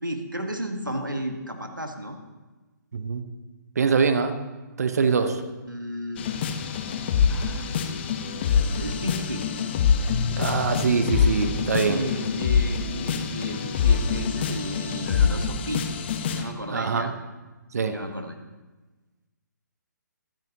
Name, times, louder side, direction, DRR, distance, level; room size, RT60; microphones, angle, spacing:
voice 1, 0.0-2.2 5.2-5.3 5.6-6.3 7.3-7.9 8.7-9.4 11.9-15.9 16.3-17.1 17.9-18.3, equal, 90° right, 5 dB, 1.5 m, -33 dB
voice 2, 2.9-3.2 3.8-4.4 4.8-5.4 10.4-12.0 16.7-17.1 17.7-18.0, right 5 dB, 55° right, 9 dB, 1.0 m, -23 dB
sound 1, 6.2-16.5, left 6 dB, 35° left, 1.0 m, -25 dB
Keyboard (musical), 10.1-13.2, left 7 dB, 55° left, 0.5 m, -34 dB
21.5 x 9.4 x 2.9 m, 1.2 s
figure-of-eight pair, 135°, 10 cm